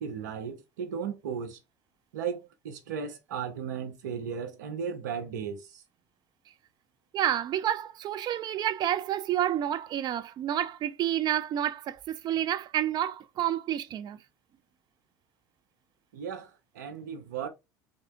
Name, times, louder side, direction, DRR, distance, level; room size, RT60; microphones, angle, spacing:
voice 1, 0.0-1.6 2.1-5.8 16.1-17.5, right 7 dB, 85° right, 0.9 m, -36 dB
voice 2, 7.1-14.2, right 11 dB, 50° right, 0.5 m, -29 dB
3.6 x 2.6 x 3.5 m
hypercardioid pair, 75°, 9 cm